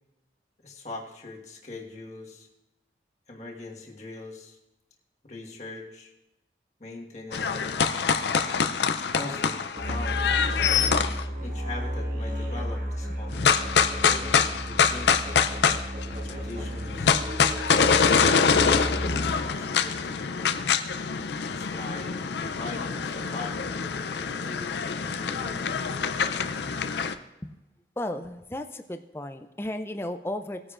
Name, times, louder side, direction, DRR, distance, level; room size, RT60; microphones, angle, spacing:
voice 1, 0.6-2.5 3.3-4.6 5.2-6.1 6.8-8.0 9.1-9.6 9.9-10.6 11.2-13.4 14.0-15.2 16.0-17.3 17.7-18.2 18.9-20.5 21.5-23.9 24.2-26.2, left 2 dB, 40° left, -1 dB, 1.5 m, -41 dB
sound 1, 7.3-11.2 13.3-16.3 16.6-27.1, left 6 dB, 75° left, 0.5 m, -25 dB
Musical instrument, 9.8-19.6, equal, 50° right, 1.7 m, -33 dB
voice 2, 18.7-19.1 27.4-27.5 28.0-30.7, left 1 dB, 15° left, 7 dB, 0.4 m, -35 dB
19.5 x 9.7 x 2.5 m, 0.95 s
head